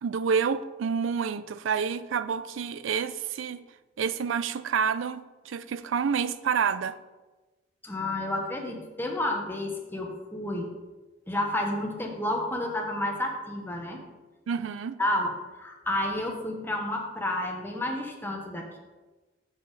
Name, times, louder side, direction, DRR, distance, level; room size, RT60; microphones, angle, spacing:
voice 1, 0.0-3.6 4.0-7.0 14.5-15.0, right 6 dB, 75° right, 14 dB, 0.4 m, -28 dB
voice 2, 7.8-10.7 11.3-14.0 15.0-15.3 15.6-18.8, left 1 dB, 10° left, 1 dB, 1.0 m, -30 dB
6.9 x 6.7 x 4.0 m, 1.2 s
head